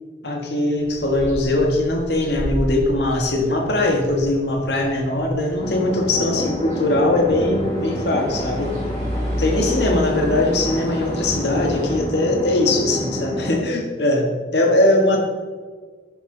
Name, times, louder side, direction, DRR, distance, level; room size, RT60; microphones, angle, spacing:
voice 1, 0.2-8.7 9.3-15.2, left 2 dB, 75° left, 1 dB, 1.6 m, -20 dB
sound 1, 0.8-12.0, equal, 45° right, 3.6 m, -32 dB
sound 2, 5.6-13.6, equal, 30° left, 1.3 m, -29 dB
11.5 x 9.4 x 3.9 m, 1.5 s
head